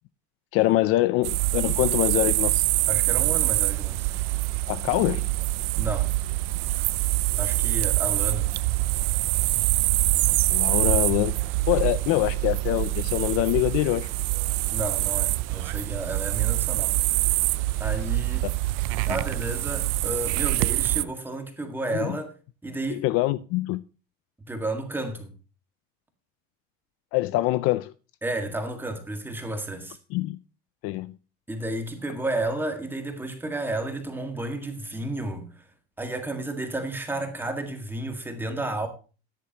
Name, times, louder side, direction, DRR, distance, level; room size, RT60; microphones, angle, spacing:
voice 1, 0.5-2.7 4.7-5.3 10.5-11.4 11.7-14.1 18.4-18.5 21.9-22.2 22.9-23.8 27.1-27.9 30.1-30.4 30.8-31.1, left 17 dB, 50° left, 0.5 m, -24 dB
sound 1, 1.2-21.0, right 19 dB, 65° right, 0.7 m, -25 dB
voice 2, 2.9-4.1 5.8-6.1 7.4-8.5 14.7-17.0 17.8-18.5 19.0-22.3 22.6-23.1 24.5-25.3 28.2-30.0 31.5-35.6 36.0-38.9, right 2 dB, 5° right, 1.8 m, -32 dB
13.5 x 10.5 x 2.9 m
cardioid pair, 165°, 31 cm